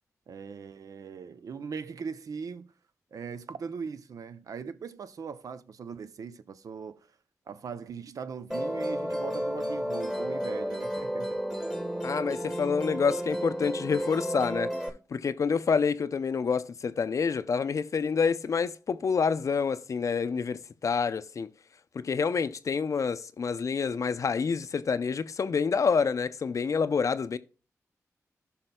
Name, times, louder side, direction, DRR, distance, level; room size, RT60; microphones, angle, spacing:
voice 1, 0.3-2.7 3.1-7.1 7.5-11.4, right 5 dB, 70° right, 0.5 m, -40 dB
Musical instrument, 8.5-14.9, equal, 5° right, 1.4 m, -32 dB
voice 2, 12.0-14.7 15.1-21.5 22.0-27.4, left 5 dB, 60° left, 0.5 m, -28 dB
14.5 x 5.5 x 2.2 m
cardioid pair, 45°, 6 cm